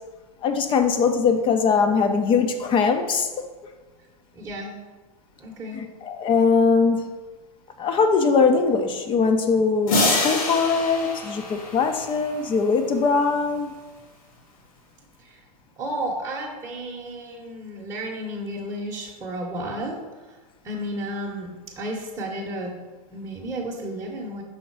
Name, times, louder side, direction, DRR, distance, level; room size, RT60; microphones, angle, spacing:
voice 1, 0.4-3.5 5.7-7.1 7.8-13.7, left 5 dB, 25° left, 6 dB, 0.6 m, -21 dB
voice 2, 4.3-4.8 5.4-5.8 15.2-15.4 15.8-20.4 20.6-22.7 23.1-24.4, right 1 dB, 15° right, -3 dB, 1.0 m, -32 dB
sound 1, 9.9-12.6, left 2 dB, 65° left, 1.7 m, -26 dB
5.7 x 3.9 x 4.6 m, 1.3 s
hypercardioid pair, 105°, 20 cm